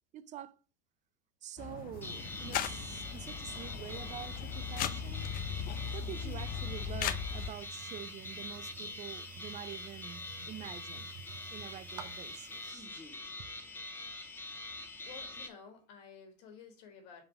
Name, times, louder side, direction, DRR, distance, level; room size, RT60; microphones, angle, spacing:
voice 1, 0.1-0.6 1.4-5.3 5.9-11.1 11.5-12.9 13.4-13.5, right 11 dB, 35° right, 0.5 m, -47 dB
sound 1, 1.6-7.5, left 8 dB, 40° left, 0.7 m, -38 dB
sound 2, 1.9-12.7, right 7 dB, 70° right, 0.9 m, -52 dB
sound 3, 2.0-15.5, left 2 dB, 10° left, 1.3 m, -44 dB
voice 2, 15.0-17.2, left 6 dB, 60° left, 1.9 m, -52 dB
5.0 x 3.9 x 5.9 m
hypercardioid pair, 90°, 21 cm